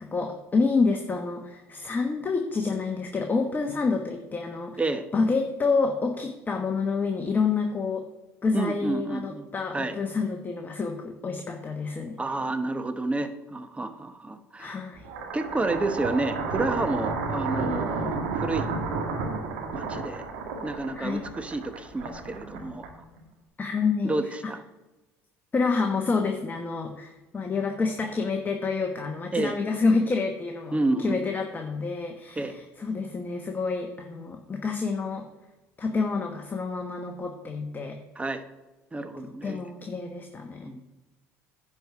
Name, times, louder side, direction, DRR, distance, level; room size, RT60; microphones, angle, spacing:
voice 1, 0.0-4.8 5.1-8.0 8.4-12.2 14.6-15.0 21.0-21.2 23.6-24.2 25.5-35.3 35.8-38.0 39.4-40.7, left 4 dB, 25° left, 3 dB, 1.2 m, -28 dB
voice 2, 8.5-9.5 9.7-10.0 12.2-14.8 15.3-18.7 19.7-20.3 20.6-23.0 24.0-24.6 29.3-29.6 30.7-31.2 32.4-32.6 38.2-38.4 38.9-39.6 40.6-40.8, right 2 dB, 15° right, 9 dB, 1.1 m, -30 dB
sound 1, 15.0-23.2, right 4 dB, 80° right, 1.9 m, -32 dB
10.5 x 4.8 x 6.7 m, 1.1 s
hypercardioid pair, 75°, 7 cm